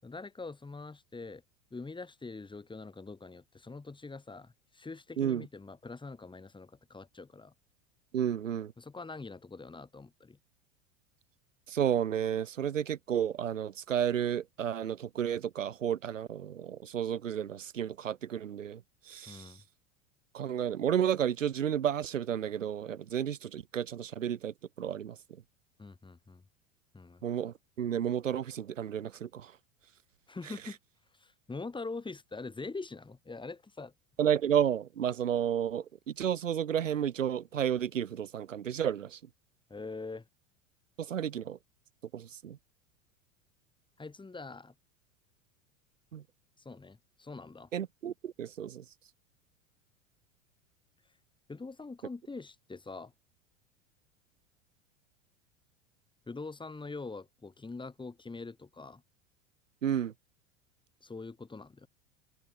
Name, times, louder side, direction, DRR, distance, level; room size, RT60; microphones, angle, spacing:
voice 1, 0.0-1.4 1.7-7.5 8.8-10.4 19.3-19.6 25.8-26.4 26.9-27.2 30.3-30.8 31.2-33.9 39.7-40.3 44.0-44.7 46.6-47.7 51.5-53.1 56.3-59.0 61.0-61.9, left 3 dB, 15° left, 4.8 m, -44 dB
voice 2, 5.2-5.5 8.1-8.7 11.7-19.6 20.3-25.2 27.2-29.5 34.2-39.2 41.0-41.6 42.1-42.6 46.1-46.2 47.7-48.8 59.8-60.1, right 9 dB, 85° right, 0.9 m, -32 dB
figure-of-eight pair, 85°, 37 cm